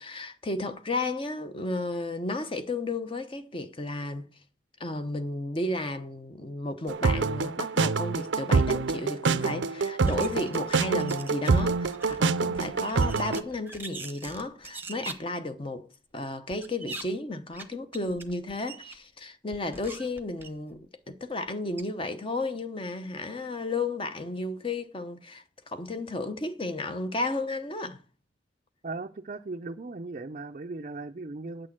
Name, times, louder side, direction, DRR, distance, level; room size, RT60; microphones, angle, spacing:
voice 1, 0.0-4.3 4.8-15.9 16.1-28.0, left 2 dB, 30° left, 0.8 m, -33 dB
sound 1, 6.9-13.4, right 4 dB, 90° right, 0.5 m, -26 dB
sound 2, 10.1-11.6 11.9-15.1 16.5-17.0 17.5-17.7 17.9-19.0 19.5-20.8 21.5-21.6 21.8-21.9, right 3 dB, 10° right, 0.9 m, -42 dB
voice 2, 28.8-31.7, right 3 dB, 40° right, 0.5 m, -37 dB
8.9 x 6.4 x 7.4 m
head